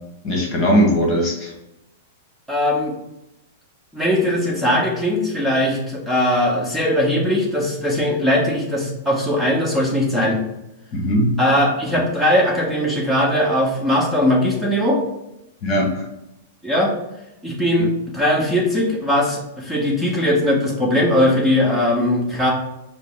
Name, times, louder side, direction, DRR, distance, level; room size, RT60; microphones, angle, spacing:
voice 1, 0.2-1.5 10.9-11.3 11.9-12.0 15.6-16.1, equal, 35° left, -1 dB, 1.4 m, -19 dB
voice 2, 2.5-2.9 3.9-10.4 11.4-15.0 16.6-16.9 17.4-22.5, left 1 dB, ahead, -5 dB, 1.3 m, -19 dB
5.0 x 2.1 x 4.6 m, 0.88 s
hypercardioid pair, 135°, 0 cm